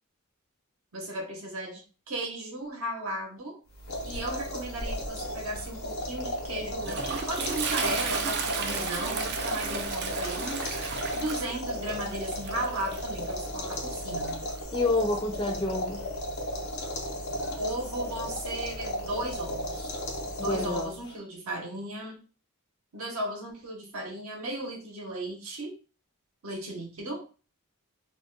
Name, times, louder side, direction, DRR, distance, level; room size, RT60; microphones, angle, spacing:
voice 1, 0.9-3.6 4.0-7.0 7.3-10.8 11.1-14.5 17.5-20.0 20.4-22.2 22.9-25.8 26.4-27.3, right 1 dB, 70° right, 2 dB, 0.8 m, -36 dB
sound 1, 3.7-21.1, left 1 dB, 85° left, 0.9 m, -35 dB
Toilet flush, 6.3-14.6, right 5 dB, 50° right, 0.4 m, -35 dB
voice 2, 14.7-16.0 20.4-21.0, left 2 dB, 20° left, 3 dB, 0.5 m, -28 dB
2.4 x 2.1 x 3.7 m, 0.35 s
head